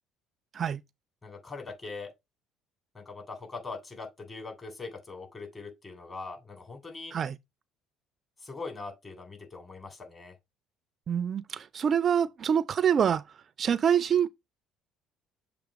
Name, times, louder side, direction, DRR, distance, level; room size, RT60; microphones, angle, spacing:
voice 1, 1.2-2.1 2.9-7.1 8.4-10.3, left 3 dB, 30° left, 3.2 m, -41 dB
voice 2, 11.1-13.2 13.6-14.3, right 8 dB, 45° right, 0.4 m, -25 dB
7.1 x 3.0 x 5.1 m
hypercardioid pair, 65°, 0 cm